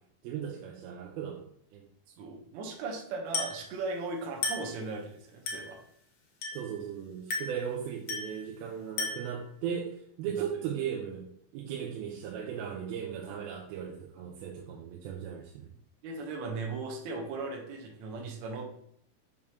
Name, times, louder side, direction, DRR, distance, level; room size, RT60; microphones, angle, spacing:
voice 1, 0.2-1.8 6.5-11.3 11.5-15.7, right 8 dB, 85° right, -1 dB, 2.5 m, -37 dB
voice 2, 2.2-5.8 10.4-10.5 16.0-18.7, right 3 dB, 65° right, 0 dB, 2.0 m, -37 dB
Glass, 3.3-3.7 4.4-4.8 5.5-5.8 6.4-6.8 7.3-7.7 8.1-8.4 9.0-9.4, left 3 dB, 80° left, 1.2 m, -34 dB
6.3 x 3.6 x 4.3 m, 0.67 s
omnidirectional pair, 4.3 m